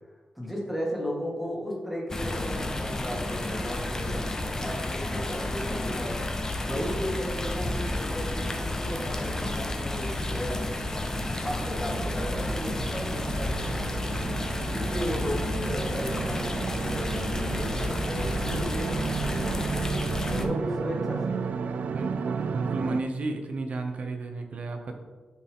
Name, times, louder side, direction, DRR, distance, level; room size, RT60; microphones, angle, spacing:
voice 1, 0.4-10.8 11.4-14.2 14.7-19.8 20.3-21.4, equal, ahead, -3 dB, 1.9 m, -35 dB
sound 1, 2.1-20.4, left 1 dB, 20° left, 0.7 m, -31 dB
sound 2, 9.2-23.0, right 6 dB, 80° right, 0.3 m, -34 dB
voice 2, 21.9-24.9, right 3 dB, 60° right, 4 dB, 0.7 m, -33 dB
10.5 x 4.6 x 3.6 m, 1.4 s
wide cardioid pair, 145°, 3 cm